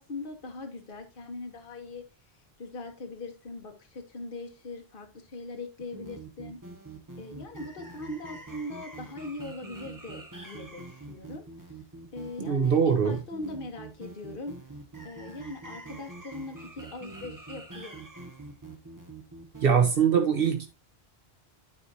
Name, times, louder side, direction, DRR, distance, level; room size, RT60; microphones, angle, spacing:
voice 1, 0.0-2.0 2.6-6.6 7.2-11.4 12.1-12.8 13.0-14.5 15.0-18.3, left 2 dB, 55° left, 1.4 m, -40 dB
sound 1, 5.8-19.9, right 3 dB, 20° right, 1.3 m, -45 dB
voice 2, 12.4-13.2 19.6-20.7, right 7 dB, 65° right, 1.1 m, -22 dB
12.0 x 4.9 x 2.7 m
omnidirectional pair, 1.1 m